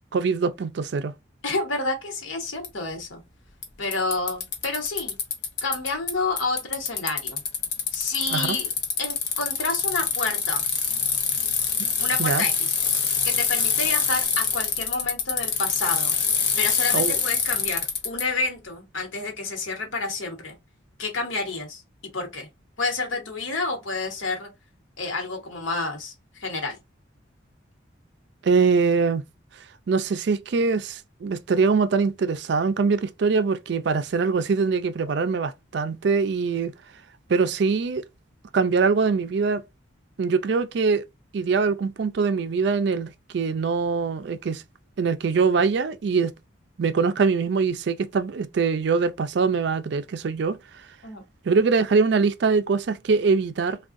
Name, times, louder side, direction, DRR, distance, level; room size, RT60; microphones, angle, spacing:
voice 1, 0.1-1.1 8.3-8.6 11.8-11.9 12.2-12.4 16.9-17.2 28.4-29.2 29.9-36.7 37.3-38.0 38.5-39.6 40.2-41.1 41.3-44.6 45.0-46.3 46.8-50.6 51.5-53.8, right 5 dB, 60° right, 0.4 m, -23 dB
voice 2, 1.4-3.2 3.8-5.1 5.6-7.4 7.9-8.7 9.0-10.6 12.0-12.8 13.2-16.1 16.6-20.6 21.0-21.8 22.1-22.5 22.8-24.5 25.0-26.8 51.0-51.2, left 3 dB, 80° left, 1.1 m, -29 dB
Bicycle, 2.6-2.7 3.6-3.7 3.9-6.1 6.4-18.2, left 6 dB, 55° left, 0.8 m, -25 dB
3.5 x 2.3 x 2.5 m
head